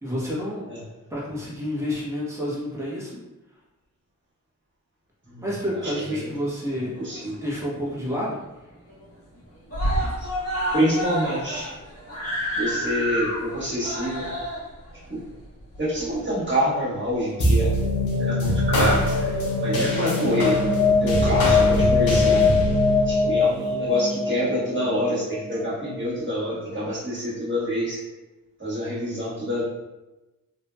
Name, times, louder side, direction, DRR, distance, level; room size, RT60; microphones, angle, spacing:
voice 1, 0.0-0.7 1.1-3.2 5.4-7.0 7.3-8.4 9.8-10.1, equal, 10° right, -7 dB, 1.1 m, -29 dB
voice 2, 5.8-6.3 7.0-7.3 10.0-10.3 10.7-11.7 12.6-14.3 15.1-15.2 15.8-17.8 18.2-19.3 19.6-20.6 20.9-22.4 23.0-28.0 28.6-29.6, equal, 35° right, -9 dB, 1.5 m, -27 dB
Screaming, 6.8-7.7 8.1-8.2 8.5-8.6 8.9-9.4 9.7-16.5 17.3-17.4, equal, 45° left, 1.3 m, -29 dB
sound 1, 17.4-26.1, left 2 dB, 90° left, 0.7 m, -21 dB
2.9 x 2.7 x 2.2 m, 1.0 s
cardioid pair, 60°, 34 cm